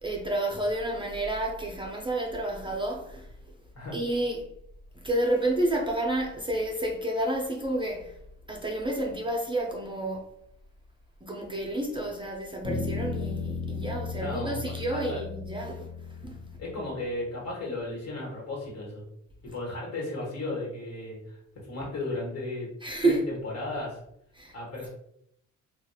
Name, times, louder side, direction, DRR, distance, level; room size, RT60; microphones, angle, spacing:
voice 1, 0.0-3.3 3.9-4.5 5.0-8.2 8.5-10.3 11.2-15.9 16.2-16.4 22.8-23.2 24.4-24.5, right 1 dB, 15° right, 0.4 m, -30 dB
Bass guitar, 12.6-17.1, left 4 dB, 30° left, 1.5 m, -35 dB
voice 2, 14.2-14.6 14.9-15.2 16.6-19.0 19.4-22.7 23.0-24.0 24.5-24.9, left 2 dB, 55° left, 1.3 m, -35 dB
2.7 x 2.2 x 2.2 m
cardioid pair, 90°, 30 cm